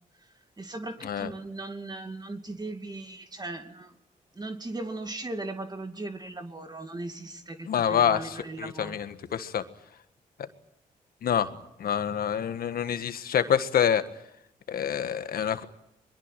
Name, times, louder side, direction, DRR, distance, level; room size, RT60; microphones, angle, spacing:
voice 1, 0.6-4.0 4.3-9.0, right 2 dB, 25° right, 6 dB, 2.5 m, -38 dB
voice 2, 7.7-8.2 8.6-9.6 11.2-11.5 11.8-14.0 14.7-15.6, left 8 dB, 75° left, 10 dB, 1.7 m, -26 dB
22.5 x 22.5 x 9.2 m, 0.79 s
cardioid pair, 60°, 15 cm